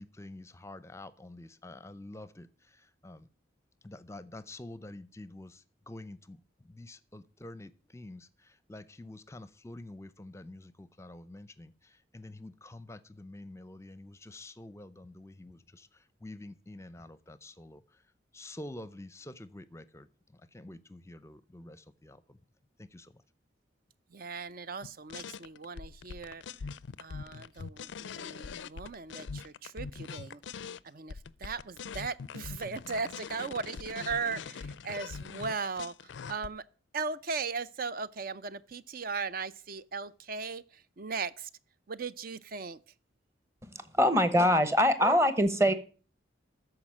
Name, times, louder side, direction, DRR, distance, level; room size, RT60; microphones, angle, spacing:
voice 1, 0.0-2.5 3.0-3.3 3.8-11.7 12.1-15.9 16.2-17.8 18.3-20.1 20.5-22.4 22.8-23.1, left 1 dB, 15° left, 0.6 m, -47 dB
voice 2, 24.1-26.4 27.0-30.4 30.8-35.9 36.3-36.6 36.9-41.5 41.9-42.8, right 4 dB, 45° right, 0.5 m, -37 dB
sound 1, 24.8-30.8 31.1-36.5, left 5 dB, 65° left, 0.4 m, -42 dB
voice 3, 44.0-45.7, equal, 15° right, 1.0 m, -23 dB
13.5 x 5.0 x 7.6 m
head